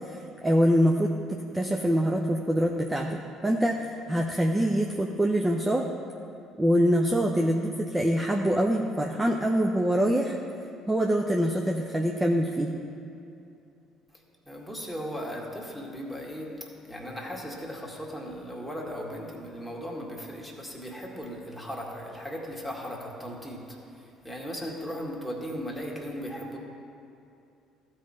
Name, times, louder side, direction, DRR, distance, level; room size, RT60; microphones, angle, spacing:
voice 1, 0.1-3.8 4.1-5.9 6.6-10.4 10.9-12.7, equal, 15° right, 1 dB, 0.7 m, -25 dB
voice 2, 14.5-26.6, equal, ahead, -2 dB, 2.0 m, -37 dB
14.5 x 4.9 x 4.3 m, 2.7 s
hypercardioid pair, 55°, 0 cm